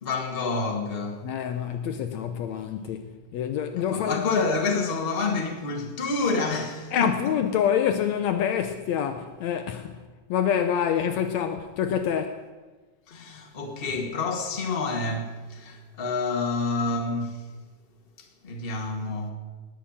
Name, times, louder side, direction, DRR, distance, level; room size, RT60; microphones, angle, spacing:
voice 1, 0.0-1.3 3.8-7.1 13.1-17.5 18.2-19.3, left 3 dB, 25° left, 1.5 m, -28 dB
voice 2, 1.2-4.4 6.9-10.0 10.3-12.4, left 8 dB, 75° left, 1.9 m, -27 dB
19.0 x 7.3 x 8.6 m
omnidirectional pair, 3.5 m